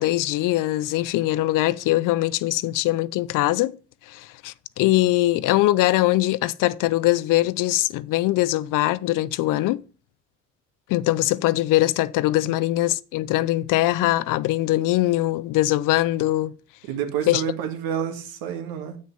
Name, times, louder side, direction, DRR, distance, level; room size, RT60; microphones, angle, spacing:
voice 1, 0.0-3.7 4.1-9.8 10.9-16.5 17.3-17.4, left 16 dB, 55° left, 0.6 m, -22 dB
voice 2, 16.8-19.0, right 8 dB, 65° right, 2.0 m, -29 dB
7.9 x 6.4 x 5.3 m
hypercardioid pair, 60°, 37 cm